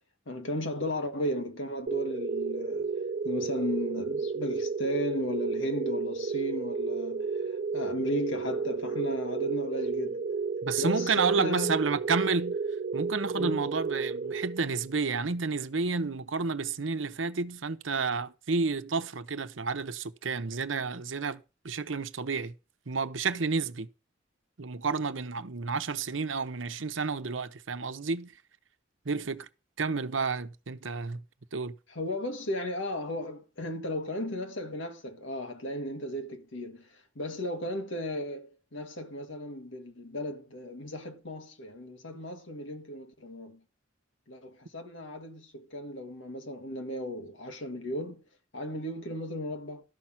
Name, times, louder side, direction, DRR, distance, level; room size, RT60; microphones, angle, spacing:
voice 1, 0.3-10.3 10.8-11.8 13.4-13.6 31.9-43.6 44.3-48.2 48.5-49.8, equal, 75° left, 1.8 m, -35 dB
sound 1, 1.9-15.0, right 4 dB, 45° right, 0.5 m, -32 dB
voice 2, 10.6-12.6 12.9-22.5 22.9-23.9 24.6-28.3 29.0-29.5 29.8-31.2 31.5-31.7, right 4 dB, 85° right, 0.9 m, -30 dB
12.5 x 5.8 x 6.1 m
head